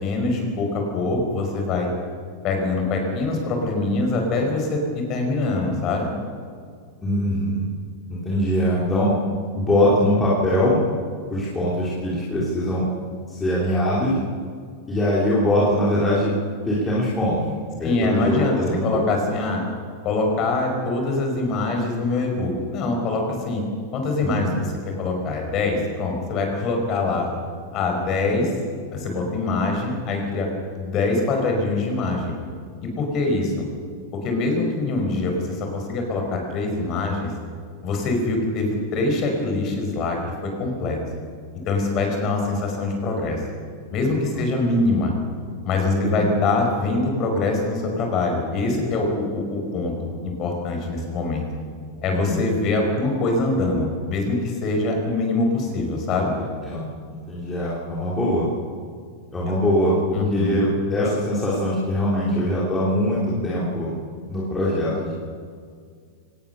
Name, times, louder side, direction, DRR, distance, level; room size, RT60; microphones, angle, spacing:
voice 1, 0.0-1.9 2.4-6.1 17.8-18.6 18.8-19.6 20.0-23.6 23.9-27.3 27.7-28.5 28.9-30.5 30.7-32.3 32.8-33.6 34.2-37.3 37.8-41.0 41.7-43.4 43.9-45.1 45.6-51.4 52.0-56.3 60.1-60.6, left 2 dB, 30° left, 3 dB, 5.0 m, -24 dB
voice 2, 7.0-7.7 8.1-9.1 9.5-10.8 11.3-12.8 13.3-14.2 14.9-16.3 16.7-17.4 17.8-19.0 24.2-24.5 44.3-44.4 45.9-46.3 52.1-52.4 56.6-58.5 59.3-63.9 64.3-65.1, left 1 dB, 10° left, -7 dB, 3.3 m, -22 dB
24.0 x 18.5 x 6.9 m, 2.1 s
supercardioid pair, 170°, 0 cm